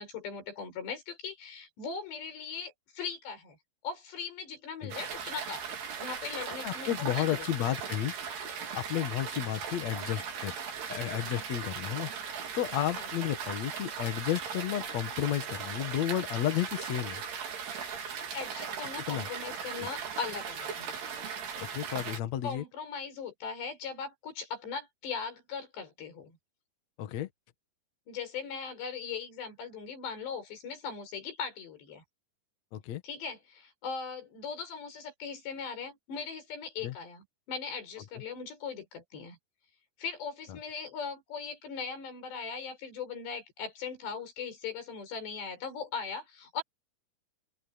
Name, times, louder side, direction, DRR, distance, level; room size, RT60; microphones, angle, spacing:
voice 1, 0.0-3.6 3.8-7.7 13.0-13.1 18.3-21.0 22.4-26.4 28.1-32.0 33.0-39.4 40.0-46.6, left 5 dB, 75° left, 7.9 m, -39 dB
sound 1, 4.9-22.2, right 6 dB, 70° right, 5.7 m, -38 dB
voice 2, 6.6-8.1 8.7-10.5 10.9-12.1 12.5-17.2 19.1-19.3 19.8-19.9 21.6-22.6 27.0-27.3 32.7-33.0 36.8-37.0 40.5-40.6, left 11 dB, 55° left, 2.0 m, -32 dB
open air
omnidirectional pair, 4.9 m